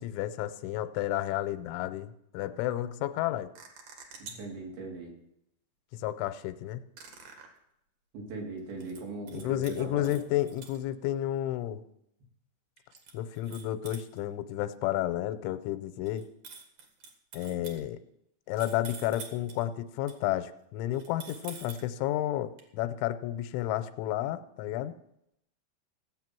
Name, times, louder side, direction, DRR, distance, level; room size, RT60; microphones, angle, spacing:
voice 1, 0.0-3.5 5.9-6.8 9.3-11.8 13.1-16.3 17.3-18.0 18.5-24.9, left 13 dB, 90° left, 11 dB, 3.1 m, -31 dB
sound 1, 3.6-4.6 7.0-7.5 8.6-9.0 9.3-10.8 12.8-14.2 16.1-17.8 18.6-19.6 20.1-20.2 20.9-21.9 22.6-22.7, right 5 dB, 55° right, 2.7 m, -47 dB
voice 2, 4.2-5.1 8.1-10.1, right 3 dB, 70° right, 0 dB, 4.9 m, -39 dB
15.5 x 8.3 x 6.0 m, 0.78 s
omnidirectional pair, 5.4 m